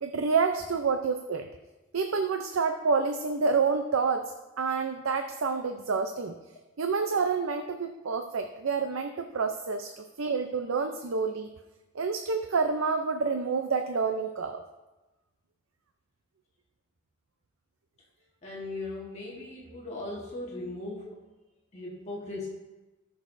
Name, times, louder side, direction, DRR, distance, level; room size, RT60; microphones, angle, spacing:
voice 1, 0.0-1.5 1.9-4.3 4.6-6.4 6.8-11.5 11.9-14.6, right 5 dB, 80° right, 6 dB, 0.6 m, -28 dB
voice 2, 18.4-21.2 21.7-22.5, left 2 dB, 35° left, -4 dB, 1.5 m, -38 dB
18.5 x 6.3 x 2.6 m, 1.1 s
head